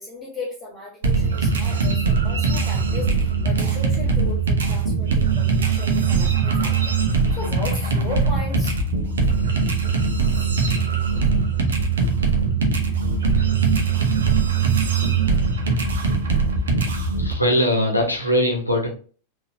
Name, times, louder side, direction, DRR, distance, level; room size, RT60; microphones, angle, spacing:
voice 1, 0.0-8.8 12.8-13.0 16.7-16.8, left 2 dB, 20° left, -6 dB, 1.6 m, -36 dB
sound 1, 1.0-17.3, right 4 dB, 65° right, 0.7 m, -21 dB
voice 2, 16.9-18.9, equal, 85° left, 1 dB, 1.0 m, -21 dB
3.9 x 2.7 x 2.7 m, 0.40 s
figure-of-eight pair, 90°, 0 cm